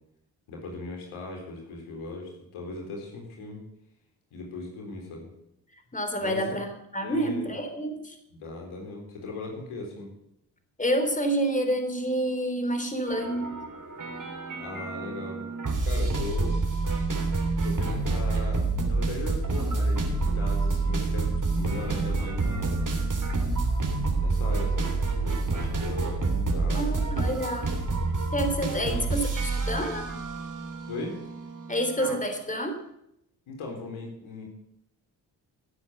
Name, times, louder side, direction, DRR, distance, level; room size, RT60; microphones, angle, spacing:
voice 1, 0.5-3.6 4.3-5.3 6.2-6.4 7.0-7.5 8.3-10.1 14.6-15.4 15.8-16.5 17.6-22.9 24.2-27.4 28.8-29.0 30.9-31.2 33.5-34.4, left 2 dB, 75° left, 1 dB, 4.0 m, -38 dB
voice 2, 5.9-8.2 10.8-13.6 26.7-27.8 28.3-30.1 31.7-32.8, right 1 dB, 15° left, 6 dB, 3.2 m, -28 dB
sound 1, 13.1-32.2, right 3 dB, 40° right, 3.3 m, -28 dB
17.0 x 8.1 x 6.7 m, 0.79 s
hypercardioid pair, 40°, 49 cm